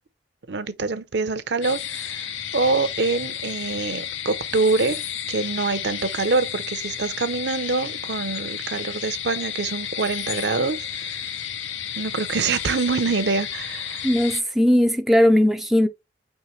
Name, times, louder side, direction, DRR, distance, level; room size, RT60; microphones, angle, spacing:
voice 1, 0.5-5.0 5.3-11.2 12.0-14.1, right 3 dB, 65° right, 0.6 m, -25 dB
sound 1, 1.6-14.4, left 9 dB, 90° left, 0.7 m, -32 dB
voice 2, 14.0-15.9, left 1 dB, ahead, 0.3 m, -18 dB
5.5 x 3.1 x 3.1 m
head